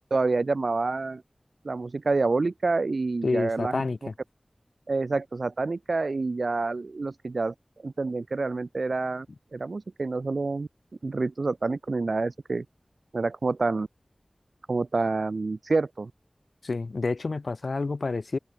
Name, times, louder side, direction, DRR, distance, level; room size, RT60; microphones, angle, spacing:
voice 1, 0.1-1.2 1.6-3.8 4.9-7.5 7.8-9.3 9.5-10.7 11.0-12.6 13.1-13.9 14.7-16.1, right 3 dB, 85° right, 7.4 m, -27 dB
voice 2, 3.2-4.1 16.6-18.4, left 3 dB, 85° left, 6.6 m, -29 dB
open air
wide cardioid pair, 45°, 0 cm